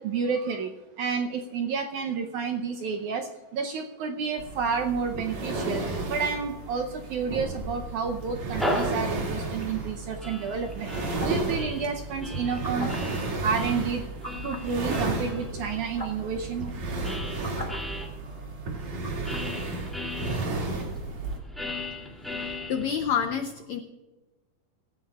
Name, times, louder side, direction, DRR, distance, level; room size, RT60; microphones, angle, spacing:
voice 1, 0.0-5.8 6.1-10.9 11.2-12.9 13.4-14.0 14.4-16.7, right 5 dB, 75° right, 4 dB, 1.8 m, -30 dB
sound 1, 4.4-21.4, right 3 dB, 50° right, 3.5 m, -33 dB
sound 2, 8.3-18.1 18.7-23.1, left 1 dB, ahead, 1.8 m, -38 dB
sound 3, 11.2-11.5 12.4-12.9 14.2-14.7 15.6-15.7 15.9-16.3 17.1-17.8 19.0-19.5, left 1 dB, 25° left, 0.7 m, -38 dB
voice 2, 22.4-23.8, left 7 dB, 85° left, 6 dB, 1.5 m, -29 dB
25.5 x 15.0 x 2.4 m, 1.2 s
omnidirectional pair, 4.4 m